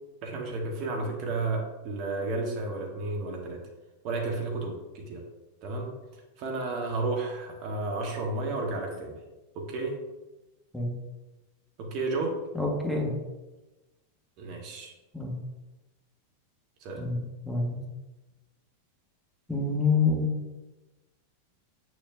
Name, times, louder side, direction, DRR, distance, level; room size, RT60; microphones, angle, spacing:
voice 1, 0.2-3.6 4.0-5.2 5.6-5.9 6.4-9.2 9.5-9.9 11.8-12.4 14.4-14.9 16.8-17.1, right 3 dB, 40° right, 1 dB, 1.3 m, -32 dB
voice 2, 12.5-13.2 15.1-15.3 17.0-17.8 19.5-20.3, left 4 dB, 5° left, -1 dB, 1.4 m, -27 dB
8.4 x 6.3 x 2.6 m, 1.1 s
figure-of-eight pair, 90°, 0 cm